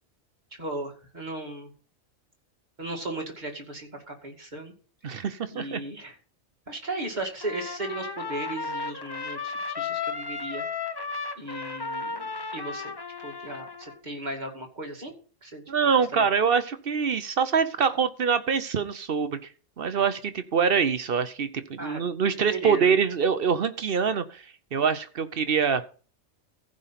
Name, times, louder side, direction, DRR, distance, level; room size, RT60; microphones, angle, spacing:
voice 1, 0.6-1.7 2.8-4.7 5.5-6.1 6.7-10.6 11.4-12.9 13.2-15.1 15.4-15.6 16.2-16.3 21.8-22.0 22.5-23.0, right 2 dB, 35° right, 1 dB, 2.5 m, -36 dB
voice 2, 5.0-5.8 15.7-19.4 19.8-24.4 24.7-25.8, right 6 dB, 50° right, 12 dB, 0.9 m, -25 dB
Trumpet, 7.4-14.0, left 4 dB, 25° left, 0.6 m, -34 dB
15.0 x 5.1 x 5.8 m, 0.39 s
omnidirectional pair, 1.4 m